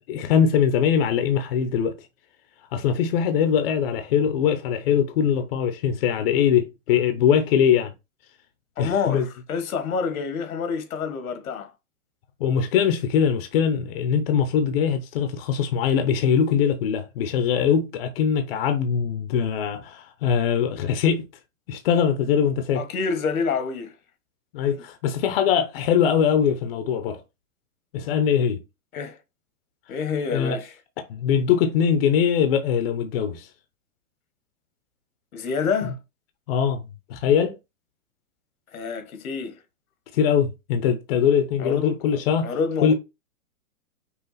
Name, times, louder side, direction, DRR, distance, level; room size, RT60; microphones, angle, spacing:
voice 1, 0.1-2.0 2.7-7.9 8.8-9.3 12.4-21.2 21.7-22.8 24.5-27.2 27.9-28.6 30.3-30.6 31.1-33.5 36.5-36.8 37.1-37.5 40.1-42.5 42.8-42.9, left 8 dB, 45° left, 0.7 m, -22 dB
voice 2, 8.8-11.7 22.7-23.9 28.9-29.2 29.9-30.7 35.3-36.0 38.7-39.6 41.6-42.9, left 5 dB, 80° left, 1.3 m, -28 dB
5.6 x 2.3 x 4.0 m
hypercardioid pair, 155°, 42 cm